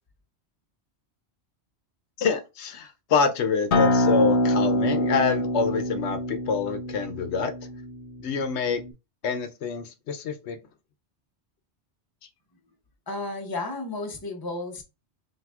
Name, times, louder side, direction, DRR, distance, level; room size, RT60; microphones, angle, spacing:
voice 1, 2.2-7.5 8.2-8.8 9.2-10.6, left 5 dB, 85° left, 0.9 m, -26 dB
Acoustic guitar, 3.7-8.9, left 1 dB, 55° left, 0.7 m, -25 dB
voice 2, 13.1-14.8, left 2 dB, 25° left, 0.8 m, -32 dB
5.8 x 2.7 x 2.4 m
omnidirectional pair, 1.1 m